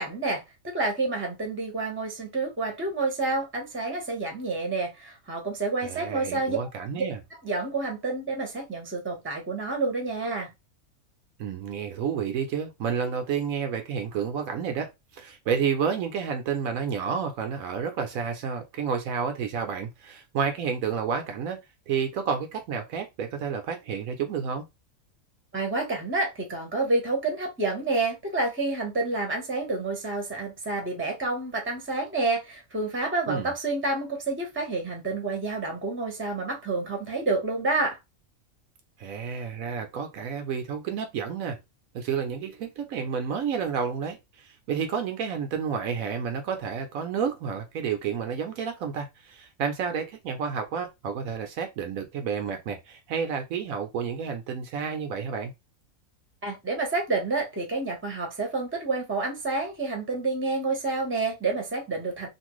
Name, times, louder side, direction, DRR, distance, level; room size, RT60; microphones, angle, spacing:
voice 1, 0.0-6.6 7.0-7.1 7.4-10.5 25.5-38.0 56.4-62.3, right 3 dB, 10° right, 0.8 m, -29 dB
voice 2, 5.8-7.2 11.4-21.6 21.9-24.7 33.3-33.5 39.0-41.6 41.9-55.5, right 6 dB, 75° right, 1.0 m, -30 dB
2.9 x 2.5 x 3.0 m
omnidirectional pair, 1.5 m